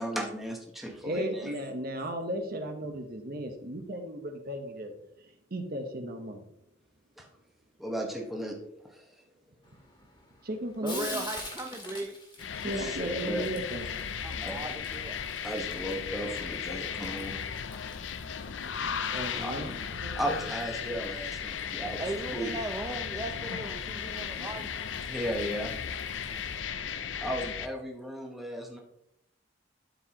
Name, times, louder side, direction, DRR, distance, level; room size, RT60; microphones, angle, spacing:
voice 1, 0.0-1.6 7.2-7.3 7.8-8.6 8.8-9.2 12.7-13.4 14.4-14.6 15.4-17.4 17.7-17.8 19.3-19.6 20.1-22.0 22.3-22.5 25.0-25.7 27.2-28.8, equal, ahead, 0 dB, 1.2 m, -35 dB
voice 2, 1.0-4.9 5.5-6.4 10.4-11.3 12.5-13.9 19.1-19.7 20.0-20.4, right 1 dB, 50° right, 5 dB, 1.1 m, -35 dB
Frying (food), 9.6-26.6, left 2 dB, 25° left, 2.0 m, -49 dB
voice 3, 10.8-12.2 14.2-15.2 19.3-19.9 21.6-24.7 26.3-26.6, right 2 dB, 15° right, 3 dB, 0.5 m, -38 dB
sound 1, 12.4-27.7, left 7 dB, 70° left, 0.5 m, -36 dB
12.0 x 4.8 x 3.0 m, 0.76 s
head